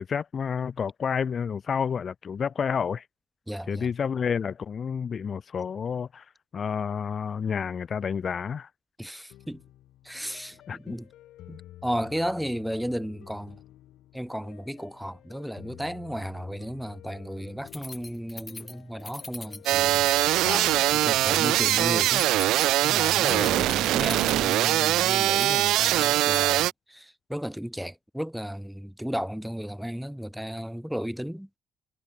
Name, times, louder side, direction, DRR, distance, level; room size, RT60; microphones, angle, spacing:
voice 1, 0.0-3.0 3.7-6.2 6.5-8.7 10.7-10.9 20.4-20.9 23.3-23.7, left 6 dB, 50° left, 0.7 m, -30 dB
voice 2, 3.5-3.9 9.0-9.6 10.0-11.1 11.5-13.6 14.1-20.1 21.0-22.3 22.8-31.5, equal, ahead, 1.3 m, -34 dB
sound 1, 9.3-26.0, left 14 dB, 85° left, 6.0 m, -51 dB
Keys jangling, 17.7-26.7, left 3 dB, 20° left, 1.8 m, -42 dB
sound 2, 19.7-26.7, right 15 dB, 90° right, 1.0 m, -22 dB
cardioid pair, 90°, 0 cm